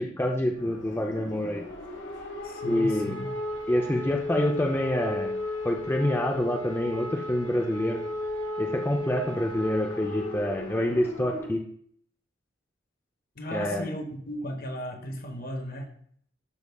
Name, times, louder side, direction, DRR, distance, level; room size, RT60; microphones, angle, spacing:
voice 1, 0.0-1.6 2.6-3.2 3.7-5.3 5.6-8.0 8.6-11.6 13.5-13.9, left 1 dB, 10° left, 2 dB, 0.5 m, -27 dB
sound 1, 0.6-11.5, left 2 dB, 80° left, 1.4 m, -35 dB
voice 2, 2.4-3.3 13.4-15.9, equal, 55° left, 4 dB, 1.1 m, -36 dB
12.5 x 4.7 x 2.3 m, 0.62 s
head